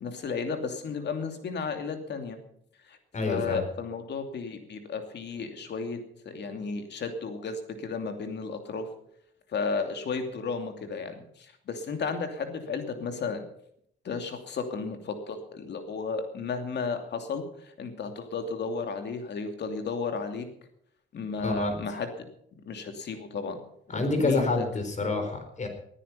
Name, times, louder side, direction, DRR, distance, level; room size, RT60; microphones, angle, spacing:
voice 1, 0.0-2.4 2.9-3.0 3.2-6.0 6.2-8.9 9.5-13.4 14.0-20.5 21.1-22.3 22.6-23.6 23.9-24.8, left 4 dB, 60° left, 6 dB, 2.7 m, -33 dB
voice 2, 3.1-3.6 21.4-21.7 23.9-25.7, left 3 dB, 35° left, 6 dB, 4.3 m, -28 dB
19.0 x 10.0 x 5.6 m, 0.70 s
cardioid pair, 90°, 20 cm